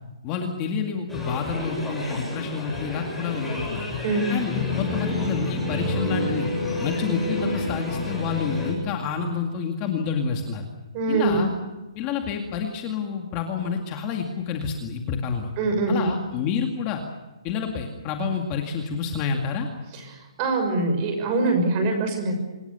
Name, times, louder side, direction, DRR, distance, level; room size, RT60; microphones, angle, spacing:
voice 1, 0.2-3.9 4.3-6.5 6.8-10.7 11.1-11.5 12.0-15.5 15.9-17.0 17.4-19.7, left 6 dB, 20° left, 3 dB, 2.1 m, -28 dB
sound 1, 1.1-8.7, left 2 dB, ahead, 7.5 m, -29 dB
voice 2, 10.9-11.4 15.6-16.1 20.4-22.3, right 3 dB, 25° right, 6 dB, 6.4 m, -23 dB
26.5 x 22.5 x 7.0 m, 1.1 s
hypercardioid pair, 175°, 3 cm